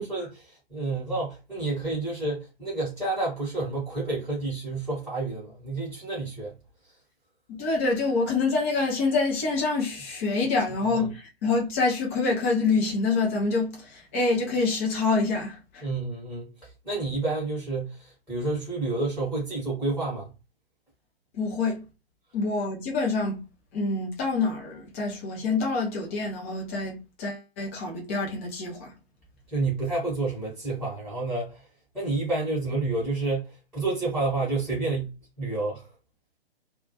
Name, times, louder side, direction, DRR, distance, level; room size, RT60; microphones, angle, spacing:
voice 1, 0.0-6.5 10.8-11.1 15.8-20.3 29.5-31.6 31.9-35.9, right 3 dB, ahead, 0.8 m, -29 dB
voice 2, 7.5-15.9 21.3-21.8 22.3-23.4 23.7-28.9, left 3 dB, 15° left, 0.4 m, -26 dB
2.1 x 2.1 x 2.7 m
figure-of-eight pair, 125°, 31 cm